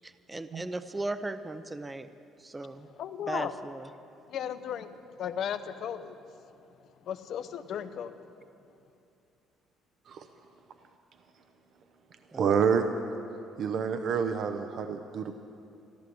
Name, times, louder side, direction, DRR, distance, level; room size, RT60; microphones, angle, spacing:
voice 1, 0.0-2.1 2.4-2.9 3.3-3.9 12.3-12.5, right 2 dB, 15° right, 11 dB, 0.6 m, -37 dB
voice 2, 3.0-3.5 4.3-6.2 7.0-8.3, left 9 dB, 60° left, 11 dB, 0.8 m, -35 dB
voice 3, 12.3-12.9 13.6-15.3, right 6 dB, 60° right, 7 dB, 0.7 m, -28 dB
14.5 x 11.5 x 7.8 m, 2.6 s
cardioid pair, 100°, 0 cm